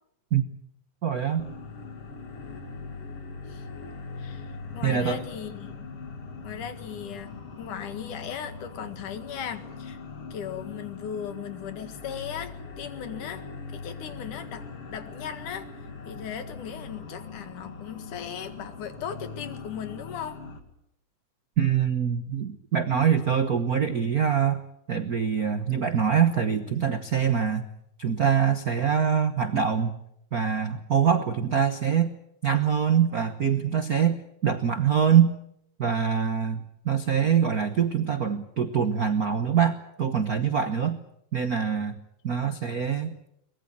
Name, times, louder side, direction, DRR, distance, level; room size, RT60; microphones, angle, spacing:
voice 1, 1.0-1.5 4.8-5.2 21.6-24.6 24.9-27.6 28.0-30.0 30.3-32.1 32.4-35.3 35.8-41.0 41.3-43.3, right 7 dB, 85° right, 9 dB, 0.8 m, -24 dB
sound 1, 1.4-20.6, left 4 dB, 50° left, 3.2 m, -41 dB
voice 2, 4.2-5.9 6.4-10.0 10.3-13.5 13.7-15.7 16.1-20.4, left 8 dB, 75° left, 9 dB, 3.3 m, -37 dB
23.5 x 20.0 x 8.8 m, 0.76 s
omnidirectional pair, 3.6 m